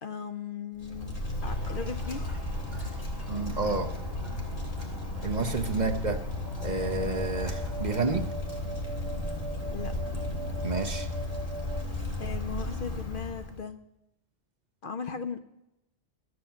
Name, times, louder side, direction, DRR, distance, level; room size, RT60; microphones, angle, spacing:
voice 1, 0.0-1.1 1.4-2.4 5.7-5.8 9.7-10.2 12.2-13.8 14.8-15.4, left 6 dB, 55° left, 9 dB, 0.7 m, -37 dB
Wind, 0.8-13.6, left 2 dB, 30° left, 2.1 m, -34 dB
Toilet flush, 1.4-8.3, right 1 dB, ahead, 3.5 m, -50 dB
voice 2, 3.3-3.9 5.2-6.2 6.6-8.2 10.6-11.1, right 3 dB, 40° right, 5 dB, 0.8 m, -30 dB
sound 1, 6.5-11.8, right 2 dB, 65° right, 1.1 m, -41 dB
13.0 x 7.8 x 7.1 m, 0.89 s
omnidirectional pair, 1.2 m